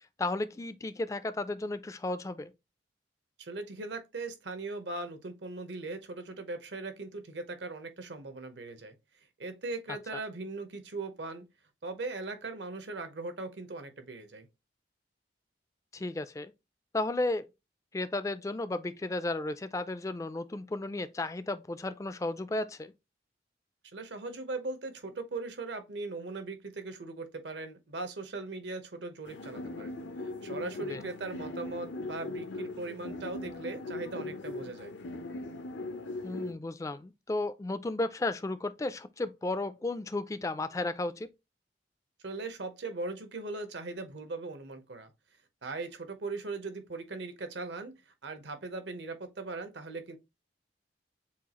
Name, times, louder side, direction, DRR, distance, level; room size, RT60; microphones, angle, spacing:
voice 1, 0.2-2.5 15.9-16.5 16.9-17.4 17.9-22.9 30.9-31.0 36.2-41.3, left 2 dB, 15° left, 0.3 m, -34 dB
voice 2, 3.4-8.9 9.4-11.5 11.8-14.5 23.9-30.0 30.2-34.9 42.2-45.1 45.6-50.2, right 3 dB, 75° right, 0.9 m, -39 dB
sound 1, 29.3-36.5, left 2 dB, 85° left, 0.7 m, -40 dB
7.1 x 2.4 x 2.9 m
head